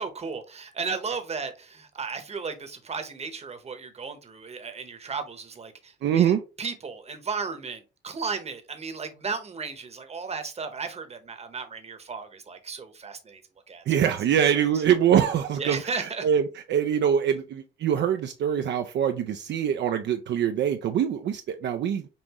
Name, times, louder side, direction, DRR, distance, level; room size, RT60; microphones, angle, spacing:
voice 1, 0.0-13.4 13.7-13.8 14.5-14.6 15.5-16.3, right 5 dB, 30° right, 0.9 m, -35 dB
voice 2, 6.0-6.4 13.9-22.1, right 9 dB, 65° right, 0.5 m, -24 dB
5.5 x 2.5 x 3.0 m
cardioid pair, 90°, 20 cm